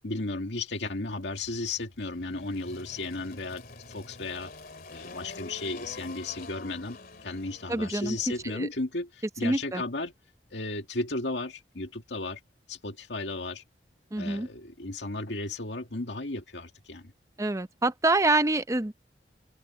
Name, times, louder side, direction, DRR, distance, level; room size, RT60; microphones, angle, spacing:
voice 1, 0.0-4.5 4.9-10.1 10.5-12.4 12.7-13.6 14.2-17.1, left 2 dB, 80° left, 2.1 m, -34 dB
Engine, 1.1-8.5, left 3 dB, 55° left, 2.5 m, -47 dB
voice 2, 7.7-8.2 8.5-8.7 9.4-9.8 14.1-14.5 17.4-18.9, right 2 dB, 15° right, 0.7 m, -26 dB
head